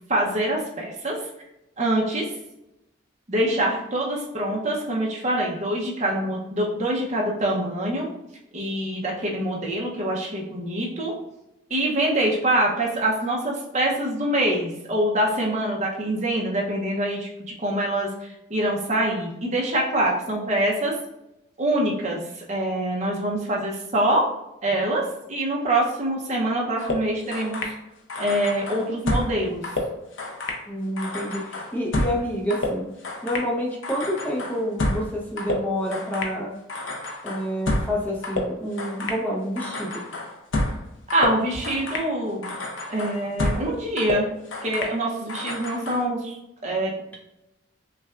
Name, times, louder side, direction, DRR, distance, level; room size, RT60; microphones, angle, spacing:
voice 1, 0.1-1.2 1.8-2.3 3.3-8.1 8.5-11.1 11.7-17.3 17.6-18.1 18.5-20.9 21.6-24.2 24.6-25.0 25.3-27.7 28.2-29.6 41.1-42.5 42.9-44.3 44.6-46.4 46.6-46.9, right 1 dB, 35° right, -2 dB, 0.8 m, -25 dB
sound 1, 26.8-27.8 28.1-29.4 29.6-30.6 31.0-33.5 33.8-35.1 35.4-36.4 36.7-38.0 38.2-39.2 39.6-40.8 41.1-42.1 42.4-43.7 44.0-45.0 45.3-46.1, left 2 dB, 70° left, 0.7 m, -29 dB
voice 2, 30.7-32.9 33.2-36.5 37.2-40.0, equal, 10° left, -2 dB, 0.7 m, -28 dB
5.6 x 2.3 x 2.4 m, 0.92 s
head